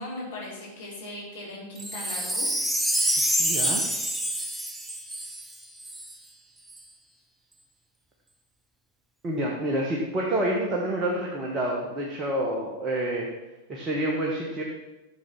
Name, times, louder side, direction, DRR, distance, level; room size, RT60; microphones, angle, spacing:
voice 1, 0.0-2.5, left 1 dB, 60° left, -5 dB, 4.6 m, -38 dB
Wind chime, 1.8-6.1 6.7-6.8, equal, 5° right, 1.0 m, -27 dB
voice 2, 3.4-3.8 9.2-13.3 13.7-14.6, right 1 dB, 25° right, -2 dB, 1.9 m, -28 dB
12.0 x 7.4 x 6.2 m, 1.1 s
figure-of-eight pair, 90°, 0 cm